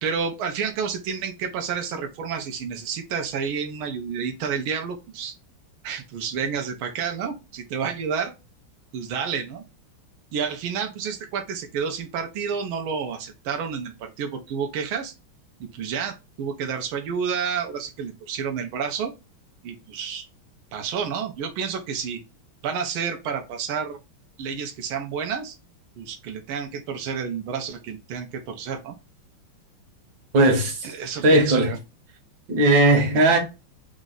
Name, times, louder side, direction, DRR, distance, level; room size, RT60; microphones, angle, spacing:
voice 1, 0.0-5.3 5.8-8.3 8.9-9.6 10.3-15.1 15.6-19.1 19.6-20.2 20.7-22.2 22.6-24.0 24.4-25.5 26.0-28.9 30.8-31.8, right 6 dB, 85° right, 1.5 m, -30 dB
voice 2, 30.3-30.9 31.2-31.7 32.5-33.4, right 2 dB, 65° right, 1.7 m, -17 dB
3.9 x 2.5 x 3.9 m
omnidirectional pair, 2.2 m